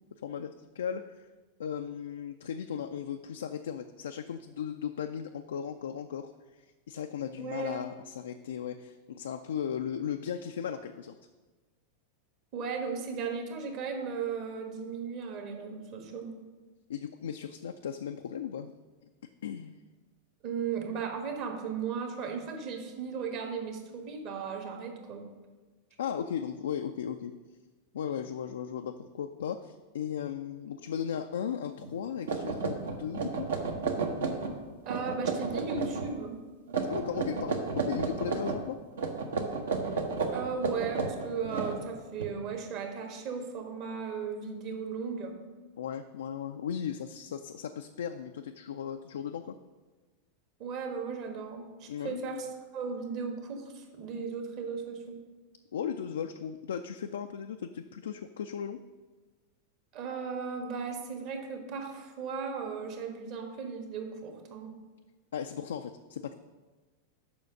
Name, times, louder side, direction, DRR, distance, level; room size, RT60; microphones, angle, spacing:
voice 1, 0.2-1.2 1.6-6.3 6.6-11.2 16.9-18.7 19.4-19.8 26.0-27.3 27.9-33.5 36.9-38.8 45.8-49.5 51.9-52.4 55.7-58.8 65.3-66.3, left 8 dB, 65° left, 7 dB, 0.3 m, -36 dB
voice 2, 7.4-7.8 12.5-16.3 20.4-25.3 34.8-36.4 40.3-45.4 50.6-52.5 52.7-55.2 59.9-64.7, right 5 dB, 40° right, 4 dB, 1.3 m, -36 dB
sound 1, 31.8-31.9 32.3-34.6 34.9-36.1 36.7-38.6 39.0-42.2, right 4 dB, 65° right, 0.9 m, -32 dB
7.0 x 5.7 x 6.2 m, 1.3 s
figure-of-eight pair, 90°, 0 cm